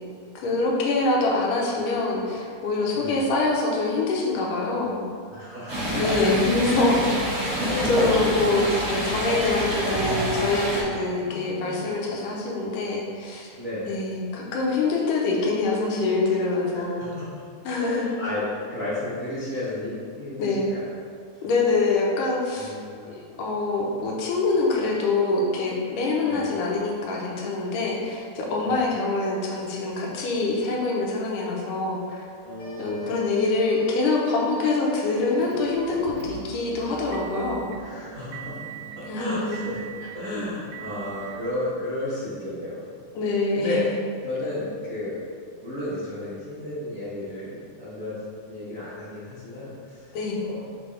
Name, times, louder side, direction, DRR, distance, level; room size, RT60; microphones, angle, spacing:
voice 1, 0.4-5.0 5.9-7.1 7.8-13.5 13.9-17.1 17.6-18.2 20.4-20.7 21.4-22.7 23.1-32.3 32.8-37.7 39.1-39.7 40.0-40.5 43.1-43.9 50.1-50.4, left 3 dB, 85° left, -1 dB, 2.5 m, -25 dB
voice 2, 5.3-6.5 7.5-8.3 11.2-11.8 13.6-13.9 16.7-17.3 17.7-20.9 22.5-23.1 26.3-26.5 28.6-28.8 32.4-33.1 37.8-38.6 38.9-39.8 40.1-42.9 43.5-43.8 44.2-45.2 45.6-48.1 48.5-50.7, left 2 dB, 65° right, -11 dB, 0.8 m, -33 dB
Stream, 5.7-10.8, equal, 35° right, 1.5 m, -27 dB
sound 1, 32.6-36.1, right 4 dB, 50° left, 1.7 m, -45 dB
Motor vehicle (road) / Engine, 35.4-41.5, right 7 dB, 80° right, 1.6 m, -41 dB
6.2 x 5.4 x 3.5 m, 2.2 s
omnidirectional pair, 3.6 m